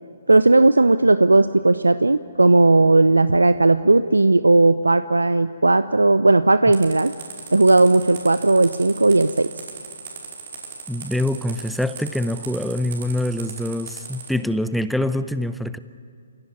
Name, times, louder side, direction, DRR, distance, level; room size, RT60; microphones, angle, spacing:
voice 1, 0.3-7.1 7.5-9.5, right 2 dB, 85° right, 13 dB, 0.6 m, -16 dB
sound 1, 6.7-14.3, right 6 dB, 50° right, 5.5 m, -37 dB
voice 2, 10.9-15.8, left 1 dB, ahead, 12 dB, 0.7 m, -25 dB
29.0 x 16.5 x 9.8 m, 2.3 s
figure-of-eight pair, 135°, 0 cm